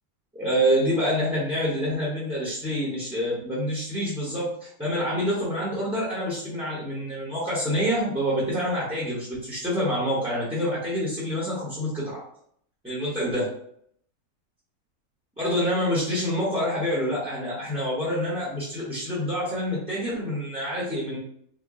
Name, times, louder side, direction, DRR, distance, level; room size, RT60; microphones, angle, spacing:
voice 1, 0.3-12.2 12.8-13.5 15.4-21.2, equal, 5° right, -8 dB, 0.6 m, -27 dB
3.6 x 2.1 x 3.6 m, 0.68 s
omnidirectional pair, 1.7 m